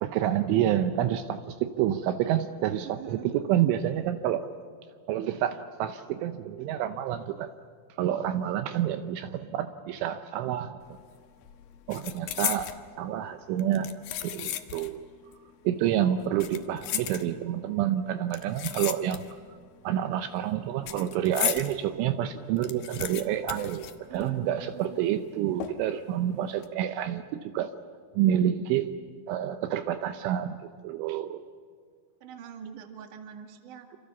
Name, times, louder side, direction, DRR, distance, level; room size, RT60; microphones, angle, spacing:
voice 1, 0.0-4.5 5.1-7.5 8.0-11.0 11.9-13.9 14.2-15.0 15.6-19.2 19.8-27.7 28.1-28.9 29.3-31.4, right 11 dB, 80° right, 9 dB, 3.2 m, -28 dB
voice 2, 2.8-3.3 11.9-12.4 24.1-25.0 32.2-34.0, right 9 dB, 50° right, 6 dB, 2.8 m, -44 dB
sound 1, 10.8-11.1 11.4-12.8 13.6-15.0 15.3-15.4 16.2-17.6 18.3-19.5 19.8-21.7 22.1-22.2 22.4-24.5 24.8-24.9 25.6-26.0 26.4-26.7, left 12 dB, 75° left, 2.1 m, -35 dB
27.5 x 27.0 x 7.1 m, 2.1 s
omnidirectional pair, 5.8 m